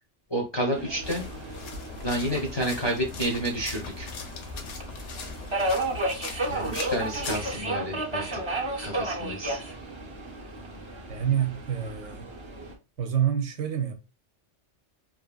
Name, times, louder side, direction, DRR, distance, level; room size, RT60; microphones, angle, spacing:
voice 1, 0.3-1.3 2.0-4.1 6.5-8.6 8.8-9.6, right 1 dB, 35° left, 0.4 m, -30 dB
Subway metro underground, 0.7-12.7, right 2 dB, 35° right, 0.5 m, -34 dB
sound 1, 1.0-7.6, left 5 dB, 90° left, 1.0 m, -39 dB
voice 2, 11.1-12.3 13.0-13.9, right 9 dB, 85° right, 0.9 m, -27 dB
2.7 x 2.5 x 2.3 m
omnidirectional pair, 1.3 m